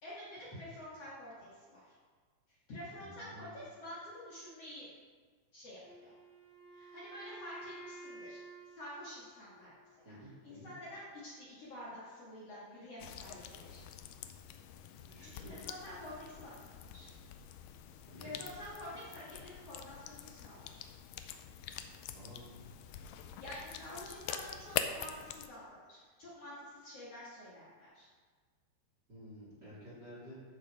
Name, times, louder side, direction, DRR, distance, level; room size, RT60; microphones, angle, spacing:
voice 1, 0.0-1.9 2.7-4.9 5.5-6.1 6.7-8.4 8.8-9.7 10.4-13.8 15.2-17.1 18.2-20.8 23.2-28.1, left 1 dB, 45° left, -8 dB, 2.7 m, -48 dB
voice 2, 3.0-3.5 10.0-10.7 15.1-15.6 18.1-18.5 22.1-22.7 29.1-30.4, equal, 25° right, -9 dB, 3.8 m, -52 dB
Wind instrument woodwind instrument, 5.8-9.9, right 2 dB, 75° right, 4.2 m, -52 dB
sound 1, 13.0-25.5, left 9 dB, 80° left, 2.1 m, -45 dB
14.0 x 6.2 x 5.0 m, 1.5 s
omnidirectional pair, 4.3 m